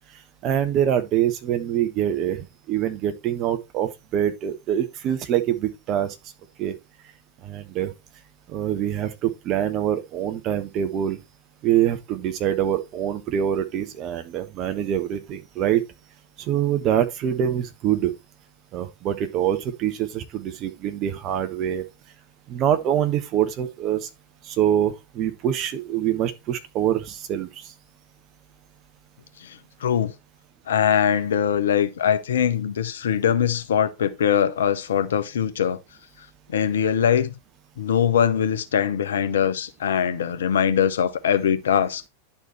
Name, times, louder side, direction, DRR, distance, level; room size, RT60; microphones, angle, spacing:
voice 1, 0.4-6.2 6.6-6.7 7.4-7.9 8.5-11.2 11.6-15.8 16.4-18.1 18.7-21.8 22.5-24.1 24.4-27.7, right 10 dB, 35° right, 1.2 m, -25 dB
voice 2, 29.4-30.1 30.7-35.8 36.5-37.3 37.8-42.1, left 8 dB, 65° left, 0.9 m, -22 dB
10.5 x 4.3 x 4.4 m
figure-of-eight pair, 90°, 0 cm